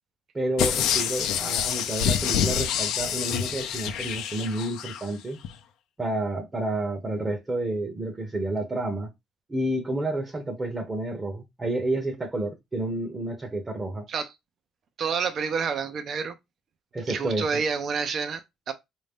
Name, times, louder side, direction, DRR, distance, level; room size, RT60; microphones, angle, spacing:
voice 1, 0.3-5.4 6.0-9.1 9.5-14.1 16.9-17.6, right 2 dB, 20° right, 0.8 m, -30 dB
sound 1, 0.6-5.0 5.4-5.5, left 9 dB, 75° left, 0.5 m, -27 dB
voice 2, 15.0-16.3 17.1-18.7, right 5 dB, 50° right, 0.5 m, -28 dB
3.9 x 2.6 x 3.5 m
cardioid pair, 115°, 0 cm